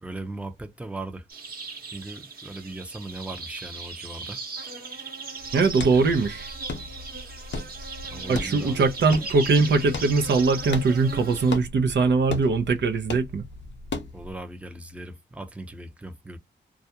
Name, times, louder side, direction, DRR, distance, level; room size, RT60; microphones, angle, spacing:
voice 1, 0.0-1.2 1.9-4.4 5.9-6.1 8.1-8.8 14.1-16.4, right 2 dB, 5° right, 0.6 m, -38 dB
sound 1, 1.3-11.6, right 4 dB, 50° right, 1.0 m, -38 dB
sound 2, 5.4-14.4, left 3 dB, 65° left, 0.7 m, -37 dB
voice 2, 5.5-6.5 8.3-13.4, right 4 dB, 65° right, 0.6 m, -21 dB
2.4 x 2.1 x 2.7 m
cardioid pair, 55°, 19 cm